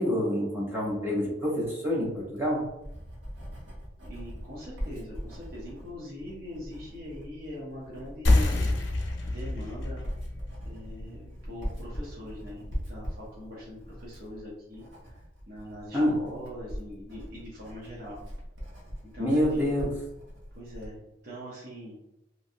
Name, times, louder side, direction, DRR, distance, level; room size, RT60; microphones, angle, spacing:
voice 1, 0.0-2.7 15.9-16.2 19.2-19.9, equal, 10° right, -4 dB, 0.6 m, -27 dB
Writing, 2.2-21.0, equal, 90° right, 1.0 m, -41 dB
voice 2, 4.0-8.7 9.2-10.1 10.6-18.2 19.0-19.7 20.5-21.9, left 1 dB, 55° right, -6 dB, 0.8 m, -42 dB
sound 1, 8.2-13.4, left 2 dB, 80° left, 0.6 m, -29 dB
3.0 x 2.6 x 2.6 m, 0.90 s
head